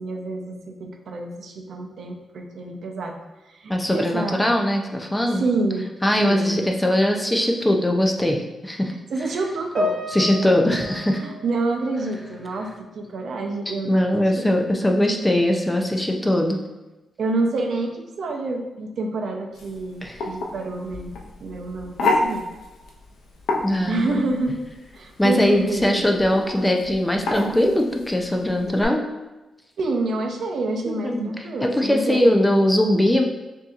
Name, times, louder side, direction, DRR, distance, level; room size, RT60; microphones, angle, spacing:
voice 1, 0.0-3.2 3.4-4.4 5.2-5.9 6.2-6.6 9.1-9.9 11.2-14.5 17.2-21.1 21.4-22.5 23.9-24.6 24.9-26.1 29.8-32.4, right 3 dB, 60° right, 3 dB, 0.6 m, -28 dB
voice 2, 3.7-5.4 6.0-8.9 10.1-11.2 13.9-16.6 20.0-20.2 23.6-24.2 25.2-29.0 30.9-31.3 31.6-33.2, left 1 dB, 10° left, 2 dB, 0.4 m, -21 dB
Piano, 9.8-12.4 12.7-13.0 13.8-13.9, left 2 dB, 40° right, 1.1 m, -31 dB
sound 1, 19.5-28.8, left 2 dB, 85° left, 0.6 m, -30 dB
6.4 x 2.7 x 2.4 m, 1.1 s
wide cardioid pair, 140°, 0 cm